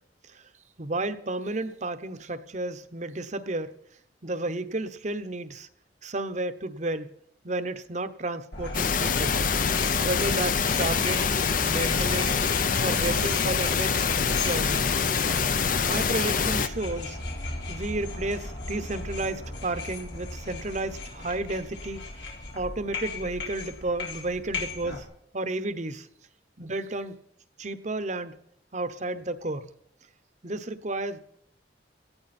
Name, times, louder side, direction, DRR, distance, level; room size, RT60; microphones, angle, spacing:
voice 1, 0.8-3.7 4.2-5.7 6.0-7.1 7.4-9.3 10.0-11.3 11.7-12.4 12.8-14.9 15.8-17.2 17.7-22.0 22.5-25.1 25.3-26.1 26.6-27.1 27.6-28.4 28.7-29.7 30.4-31.2, right 2 dB, 40° right, 10 dB, 0.9 m, -32 dB
sound 1, 8.5-25.0, left 2 dB, 90° left, 4.0 m, -36 dB
sound 2, 8.7-16.7, left 6 dB, 50° left, 0.6 m, -25 dB
18.0 x 14.0 x 4.3 m, 0.73 s
head